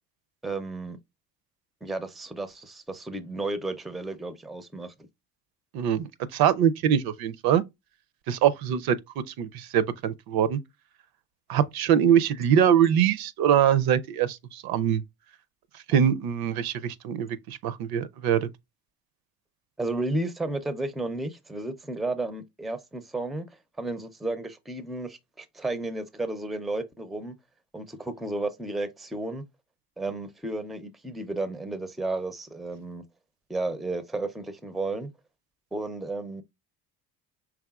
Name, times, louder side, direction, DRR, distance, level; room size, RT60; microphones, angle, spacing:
voice 1, 0.4-1.0 1.8-4.9 19.8-23.5 23.8-27.4 27.7-29.4 30.0-33.0 33.5-35.1 35.7-36.4, right 2 dB, ahead, 0.4 m, -33 dB
voice 2, 5.7-7.6 8.3-9.0 9.3-10.6 11.5-15.0 15.9-18.5, right 9 dB, 70° right, 0.5 m, -23 dB
4.8 x 3.5 x 2.3 m
cardioid pair, 105°, 38 cm